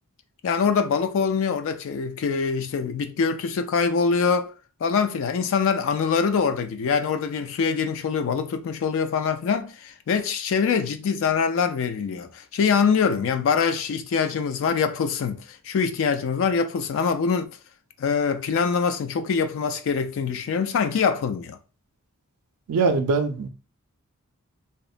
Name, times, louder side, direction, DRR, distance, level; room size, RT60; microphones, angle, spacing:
voice 1, 0.4-4.5 4.8-17.6 18.0-21.6, left 6 dB, 60° left, 0.3 m, -24 dB
voice 2, 22.7-23.5, right 4 dB, 85° right, 0.4 m, -22 dB
2.9 x 2.1 x 2.4 m
head